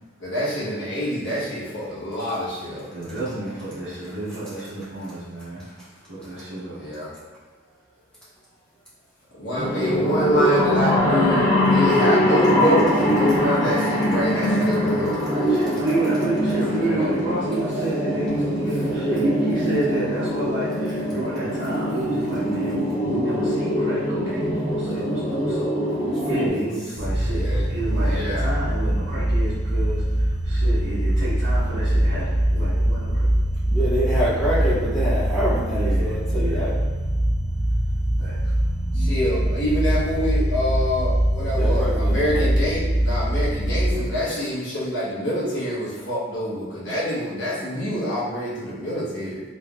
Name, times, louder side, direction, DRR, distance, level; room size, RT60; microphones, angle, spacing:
voice 1, 0.2-3.1 6.7-7.1 9.3-15.5 16.7-17.3 27.3-27.6 27.9-28.5 39.0-49.4, equal, 65° left, -8 dB, 1.1 m, -26 dB
voice 2, 2.9-5.6 6.1-6.8 15.5-25.7 26.2-30.0 30.4-33.3 35.7-36.7 38.2-38.3, right 1 dB, 90° right, -16 dB, 1.4 m, -29 dB
sound 1, 9.6-26.5, equal, 15° right, 0.9 m, -23 dB
voice 3, 25.9-26.6 33.7-36.7 41.5-42.4 43.9-44.2, equal, 10° left, -14 dB, 0.9 m, -26 dB
sound 2, 26.9-43.9, right 1 dB, 45° right, 0.7 m, -22 dB
3.2 x 3.0 x 2.4 m, 1.3 s
head